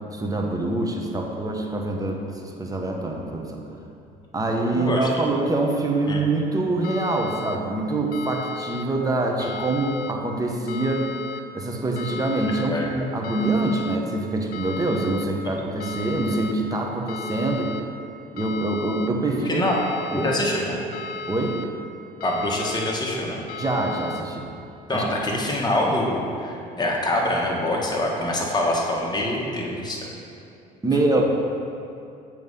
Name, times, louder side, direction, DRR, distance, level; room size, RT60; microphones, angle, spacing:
voice 1, 0.1-3.6 4.3-11.1 11.5-17.7 18.3-19.7 20.1-20.3 21.3-21.6 23.6-24.5 24.9-25.0 30.8-31.2, right 2 dB, 20° right, 1 dB, 0.9 m, -25 dB
voice 2, 4.8-5.2 6.1-6.2 12.6-12.9 19.4-19.8 20.1-20.8 22.2-23.4 24.9-30.1, left 1 dB, 25° left, -2 dB, 1.3 m, -25 dB
sound 1, 6.8-7.6 8.1-8.8 9.4-10.1 10.7-11.4 12.0-12.7 13.2-14.0 14.5-15.3 15.8-16.5 17.1-17.8 18.4-19.1 19.6-20.4 20.9-21.7 22.2-22.9 23.5-24.2, left 3 dB, 60° left, 0.4 m, -35 dB
7.2 x 3.1 x 5.4 m, 2.6 s
supercardioid pair, 75°, 18 cm